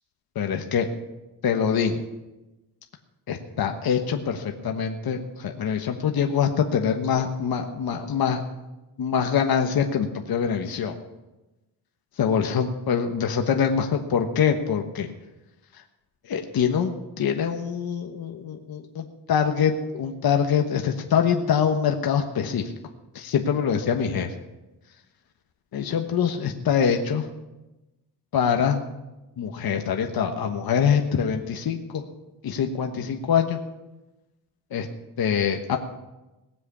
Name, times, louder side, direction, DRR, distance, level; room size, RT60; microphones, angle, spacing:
voice 1, 0.3-0.9 1.4-2.0 3.3-8.4 9.0-10.9 12.2-15.1 16.2-22.7 23.1-24.3 25.7-27.3 28.3-28.8 29.4-32.0 32.4-33.6 34.7-34.9 35.2-35.8, left 7 dB, 60° left, 4 dB, 1.2 m, -24 dB
18.5 x 7.8 x 6.9 m, 1.0 s
wide cardioid pair, 135°, 40 cm